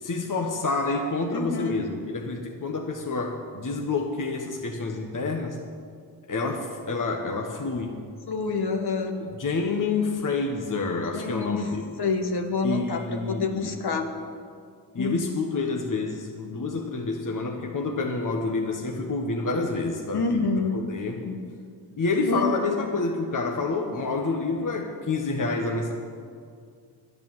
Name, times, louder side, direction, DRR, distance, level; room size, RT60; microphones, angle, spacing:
voice 1, 0.0-5.6 6.3-8.0 9.2-11.8 12.6-13.7 14.9-20.2 20.7-21.3 22.0-25.9, left 3 dB, 45° left, 2 dB, 1.3 m, -28 dB
voice 2, 1.3-1.8 8.3-9.2 11.1-11.7 12.0-14.1 15.0-15.3 20.1-20.8 21.2-21.4 22.3-22.4, left 3 dB, 60° left, 4 dB, 1.6 m, -27 dB
10.5 x 10.5 x 7.5 m, 2.2 s
cardioid pair, 65°, 43 cm